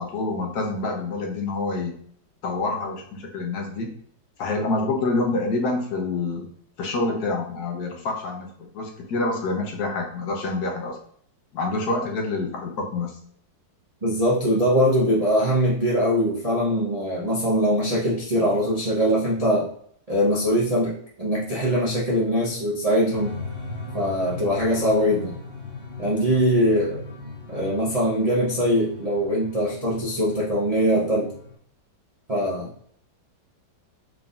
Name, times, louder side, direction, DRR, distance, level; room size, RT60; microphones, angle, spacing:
voice 1, 0.0-1.9 2.4-4.0 4.4-6.5 6.8-11.0 11.5-13.2, left 3 dB, 60° left, 1 dB, 1.3 m, -27 dB
voice 2, 14.0-19.7 20.1-23.4 23.9-25.4 26.0-27.0 27.5-31.3 32.3-32.7, equal, 70° right, -5 dB, 0.3 m, -22 dB
sound 1, 23.1-31.5, left 3 dB, 30° right, 1.5 m, -38 dB
4.6 x 3.8 x 2.5 m, 0.62 s
omnidirectional pair, 2.1 m